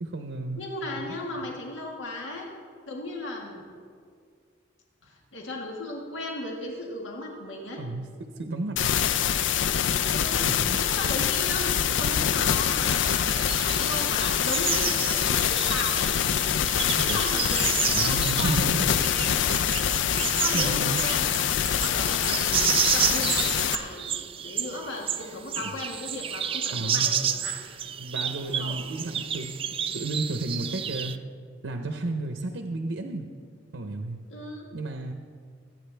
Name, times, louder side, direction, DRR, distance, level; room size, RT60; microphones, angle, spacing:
voice 1, 0.0-0.6 1.0-1.5 7.8-8.1 8.4-8.9 10.4-10.9 17.0-17.2 17.8-18.9 20.5-21.0 25.6-25.7 26.7-27.1 28.0-31.2 31.6-33.3 33.7-34.2 34.7-35.1, right 2 dB, 75° right, 4 dB, 0.8 m, -32 dB
voice 2, 0.6-2.5 2.9-3.6 5.0-7.8 10.1-10.4 10.8-11.6 11.9-16.1 17.0-18.8 20.3-21.5 21.8-27.6 28.6-28.8 34.3-34.7, left 2 dB, 90° left, 0 dB, 1.7 m, -36 dB
sound 1, 8.8-23.8, left 9 dB, 75° left, 0.4 m, -25 dB
sound 2, 13.0-31.2, right 8 dB, 30° right, 0.4 m, -31 dB
23.5 x 8.9 x 3.4 m, 2.1 s
head